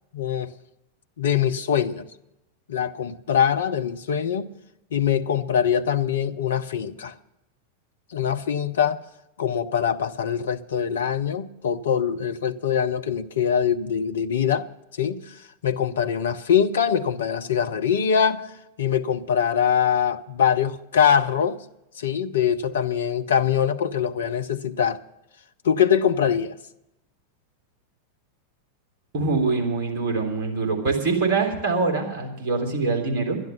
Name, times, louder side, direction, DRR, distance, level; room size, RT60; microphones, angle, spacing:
voice 1, 0.1-0.5 1.2-2.1 2.7-4.5 4.9-7.1 8.1-9.0 9.4-14.7 15.0-15.2 15.6-18.5 18.8-21.6 22.0-25.0 25.6-26.5, left 8 dB, 65° left, 0.6 m, -23 dB
voice 2, 29.1-33.4, right 4 dB, 45° right, 3.3 m, -24 dB
12.0 x 10.5 x 7.1 m
figure-of-eight pair, 90°, 0 cm